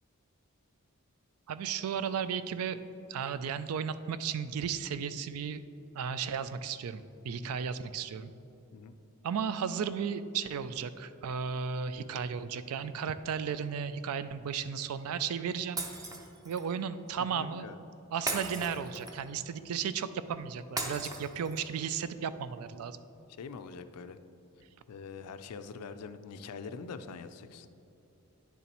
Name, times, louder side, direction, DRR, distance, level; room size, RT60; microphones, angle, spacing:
voice 1, 1.5-2.8 3.1-5.6 6.0-8.3 9.2-15.8 16.5-17.7 18.1-23.0, right 7 dB, 70° right, 13 dB, 0.3 m, -34 dB
Shatter, 15.8-16.7 18.3-19.4 20.8-21.8, right 2 dB, 15° right, 0.6 m, -37 dB
voice 2, 17.3-17.8 21.0-21.1 23.4-24.2 24.9-27.7, left 5 dB, 90° left, 11 dB, 0.4 m, -44 dB
9.7 x 7.0 x 3.0 m, 2.8 s
head